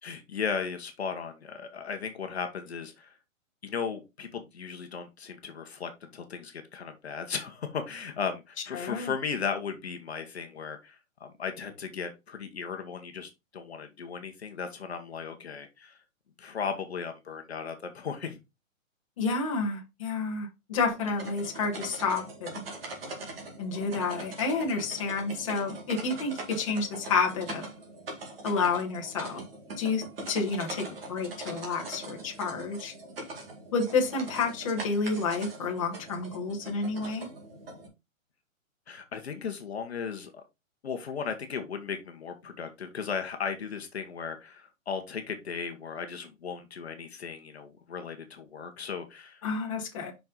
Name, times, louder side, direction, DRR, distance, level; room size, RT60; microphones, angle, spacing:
voice 1, 0.0-3.1 3.6-16.0 16.4-18.4 38.9-40.4 40.8-49.4, left 6 dB, 50° left, 1.1 m, -36 dB
voice 2, 8.7-9.1 19.2-22.5 23.6-27.7 28.4-29.4 29.8-32.9 33.7-37.3 49.4-50.1, left 4 dB, 25° left, 1.3 m, -30 dB
sound 1, 20.9-37.9, right 2 dB, 45° right, 2.3 m, -42 dB
5.6 x 5.2 x 3.8 m
hypercardioid pair, 180°, 41 cm